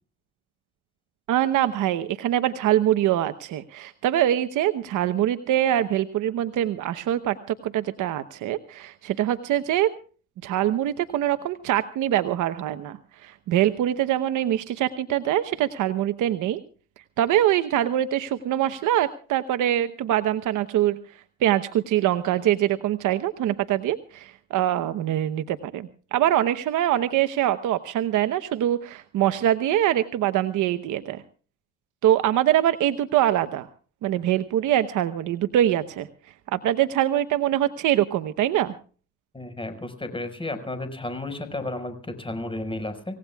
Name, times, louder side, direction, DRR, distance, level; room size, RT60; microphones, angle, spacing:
voice 1, 1.3-9.9 10.4-16.6 17.2-21.0 21.4-31.2 32.0-33.7 34.0-36.1 36.5-38.7, right 12 dB, 85° right, 10 dB, 1.0 m, -24 dB
voice 2, 39.3-43.2, left 2 dB, 15° left, 8 dB, 5.1 m, -33 dB
27.0 x 17.5 x 2.4 m, 0.40 s
cardioid pair, 90°, 30 cm